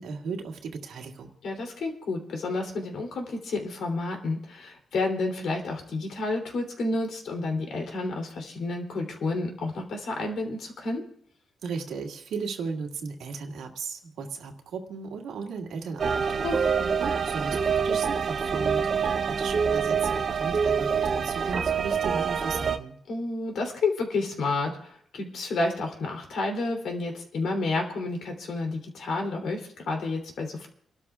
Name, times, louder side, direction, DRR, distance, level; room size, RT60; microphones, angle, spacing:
voice 1, 0.0-1.3 11.6-16.7 17.0-23.0, right 5 dB, 85° right, 2 dB, 2.0 m, -36 dB
voice 2, 1.4-11.0 16.4-16.9 23.1-30.7, left 3 dB, 70° left, 2 dB, 3.2 m, -30 dB
sound 1, 16.0-22.8, right 6 dB, 45° right, 0.7 m, -26 dB
29.5 x 12.5 x 2.4 m, 0.65 s
cardioid pair, 135°, 0 cm